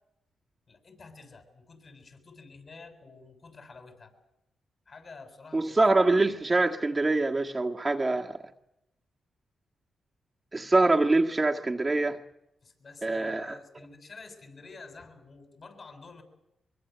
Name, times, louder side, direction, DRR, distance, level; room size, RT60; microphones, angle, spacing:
voice 1, 0.7-4.1 4.9-6.4 12.6-16.2, left 4 dB, 50° left, 7.4 m, -49 dB
voice 2, 5.5-8.4 10.5-12.2 13.0-13.5, right 2 dB, 25° right, 1.6 m, -24 dB
23.5 x 23.5 x 8.1 m
cardioid pair, 75°, 0 cm